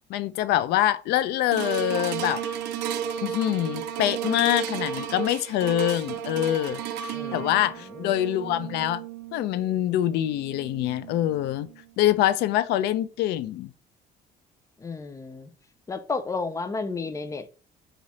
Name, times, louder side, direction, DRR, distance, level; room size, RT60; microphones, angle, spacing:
voice 1, 0.1-2.4 3.2-9.0 9.3-11.7 12.0-13.7, left 13 dB, 80° left, 0.4 m, -25 dB
sound 1, 1.5-11.9 12.5-12.6, right 9 dB, 80° right, 0.4 m, -34 dB
voice 2, 7.1-7.5 8.0-8.8 14.8-15.5 15.9-17.5, left 4 dB, 20° left, 0.5 m, -33 dB
3.3 x 2.4 x 4.0 m
cardioid pair, 110°, 17 cm